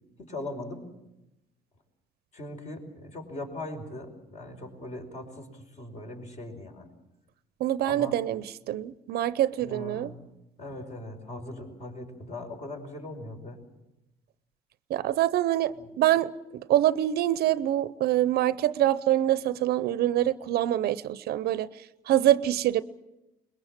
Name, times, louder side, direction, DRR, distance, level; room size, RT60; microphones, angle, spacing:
voice 1, 0.2-0.8 2.3-6.9 7.8-8.1 9.6-10.3 10.6-13.6 15.7-15.9, left 1 dB, 45° left, 5.1 m, -40 dB
voice 2, 7.6-10.1 14.9-21.7 22.1-22.8, right 13 dB, 70° right, 0.7 m, -25 dB
23.0 x 21.5 x 7.5 m
cardioid pair, 110°, 17 cm